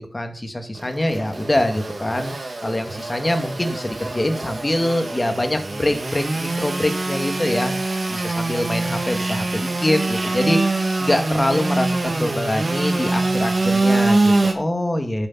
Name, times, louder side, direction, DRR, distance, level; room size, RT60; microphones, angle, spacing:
voice 1, 0.0-2.3 2.6-7.7 8.1-10.6 11.0-15.3, left 1 dB, 30° left, 6 dB, 2.2 m, -24 dB
Engine / Sawing, 0.7-14.5, right 2 dB, 60° right, 2.2 m, -24 dB
10.5 x 9.1 x 4.2 m, 0.42 s
wide cardioid pair, 50°, 0 cm